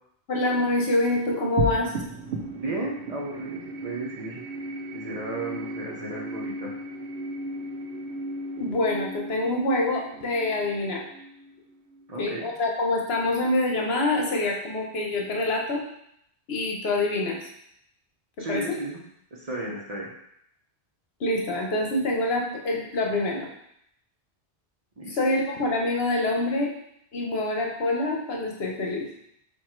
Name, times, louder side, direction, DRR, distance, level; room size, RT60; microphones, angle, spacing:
voice 1, 0.3-1.9 8.6-11.0 12.2-15.8 16.5-17.5 18.4-18.6 21.2-23.5 25.1-26.7 27.1-29.1, left 2 dB, 70° left, 0 dB, 1.0 m, -26 dB
sound 1, 1.6-12.2, right 2 dB, 80° right, 0.9 m, -35 dB
voice 2, 2.5-4.4 4.9-6.8 12.1-12.5 18.4-19.0 19.3-20.1 25.0-25.2, right 2 dB, 40° right, -3 dB, 0.7 m, -34 dB
4.5 x 2.4 x 4.4 m, 0.74 s
omnidirectional pair, 1.1 m